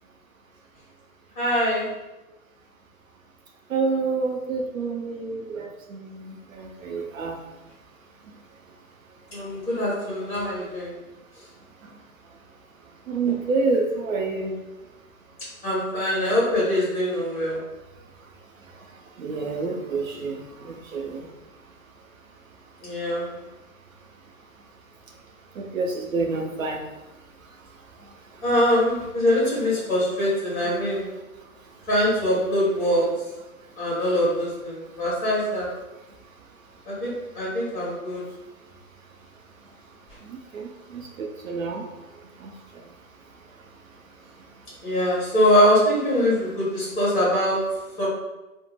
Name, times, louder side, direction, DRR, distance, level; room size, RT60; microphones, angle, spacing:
voice 1, 1.3-1.9 9.3-11.0 15.6-17.6 22.8-23.3 28.4-31.1 31.9-33.2 33.8-35.7 36.9-38.2 44.8-48.1, equal, 15° left, -7 dB, 1.3 m, -23 dB
voice 2, 3.7-7.4 8.2-8.3 11.8-12.0 13.1-14.5 18.7-21.3 25.1-25.2 25.5-26.9 27.4-27.7 28.0-28.4 31.4-31.9 34.9-35.0 39.6-39.7 40.2-42.9 43.5-44.0, right 4 dB, 65° right, 1 dB, 0.6 m, -29 dB
2.9 x 2.1 x 3.1 m, 1.0 s
hypercardioid pair, 140°, 43 cm